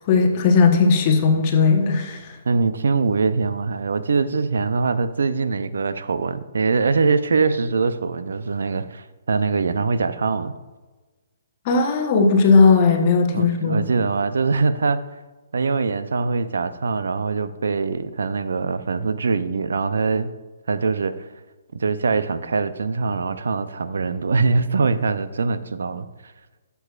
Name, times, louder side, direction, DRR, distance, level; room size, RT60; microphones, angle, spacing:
voice 1, 0.1-2.4 11.6-13.9, left 4 dB, 35° left, 2 dB, 1.1 m, -17 dB
voice 2, 2.5-10.5 13.3-15.0 15.5-20.3 20.7-21.3 21.7-26.3, right 4 dB, 80° right, 12 dB, 0.5 m, -23 dB
12.0 x 7.0 x 2.4 m, 1.3 s
hypercardioid pair, 150°, 0 cm